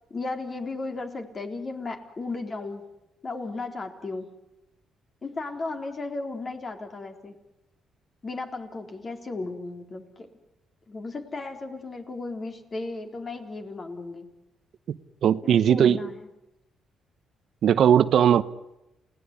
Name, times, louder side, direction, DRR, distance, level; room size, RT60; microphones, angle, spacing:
voice 1, 0.1-2.8 3.2-4.3 5.2-7.3 8.2-10.3 10.9-14.3 15.4-16.3, left 3 dB, 35° left, 4.0 m, -35 dB
voice 2, 14.9-16.0 17.6-18.4, right 9 dB, 65° right, 1.0 m, -19 dB
29.0 x 18.5 x 9.8 m
cardioid pair, 90°, 0 cm